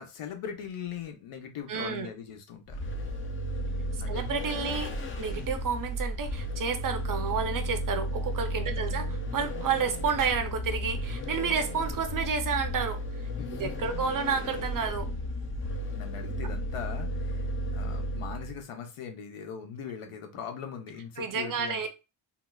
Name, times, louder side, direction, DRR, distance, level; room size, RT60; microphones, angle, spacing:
voice 1, 0.0-2.8 4.0-4.3 4.6-4.8 8.6-9.1 13.4-14.0 15.9-21.9, left 7 dB, 85° left, 5 dB, 0.9 m, -41 dB
voice 2, 1.7-2.1 4.1-4.9 5.2-9.1 9.3-13.0 13.5-15.1 21.2-21.9, right 6 dB, 45° right, 7 dB, 0.5 m, -30 dB
Vehicle, 2.7-18.6, equal, 30° left, 0.3 m, -33 dB
3.8 x 2.4 x 2.2 m, 0.28 s
wide cardioid pair, 155°, 50 cm